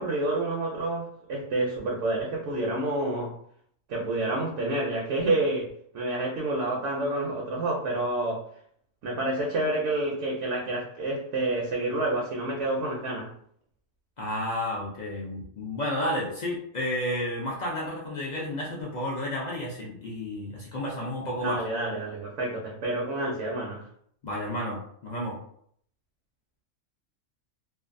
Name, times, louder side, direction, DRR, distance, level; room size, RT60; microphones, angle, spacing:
voice 1, 0.0-3.3 3.9-5.7 5.9-8.4 9.0-13.3 21.4-23.9, right 2 dB, 70° right, -2 dB, 0.8 m, -28 dB
voice 2, 14.2-21.6 24.2-25.4, left 1 dB, 65° left, -4 dB, 0.4 m, -31 dB
2.5 x 2.3 x 2.5 m, 0.65 s
omnidirectional pair, 1.4 m